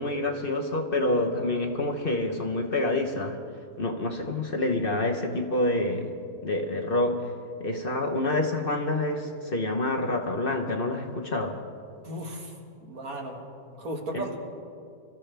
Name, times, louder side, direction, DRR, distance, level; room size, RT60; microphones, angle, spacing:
voice 1, 0.0-3.4 3.8-6.2 6.4-7.3 7.6-11.6 14.1-14.2, left 2 dB, 40° left, 2 dB, 1.1 m, -27 dB
voice 2, 12.0-12.5 12.8-13.4 13.8-14.4, right 1 dB, 70° right, 1 dB, 2.2 m, -35 dB
25.5 x 14.0 x 3.4 m, 2.4 s
omnidirectional pair, 1.6 m